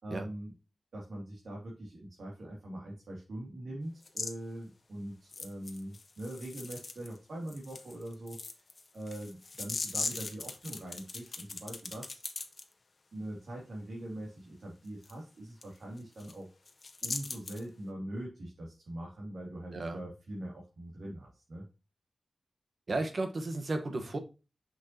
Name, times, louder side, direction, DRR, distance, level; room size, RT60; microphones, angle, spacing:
voice 1, 0.0-0.5 0.9-8.6 8.9-12.2 13.1-16.5 17.0-21.6, right 1 dB, 80° right, 2.5 m, -42 dB
sound 1, 4.0-4.3 5.3-7.2 7.5-12.6 15.0-15.1 15.6-15.7 16.0-16.3 16.7-17.6, left 3 dB, 50° left, 1.0 m, -40 dB
voice 2, 19.7-20.0 22.9-24.2, right 2 dB, 55° right, 1.2 m, -34 dB
6.2 x 6.1 x 2.8 m
wide cardioid pair, 85°, 0 cm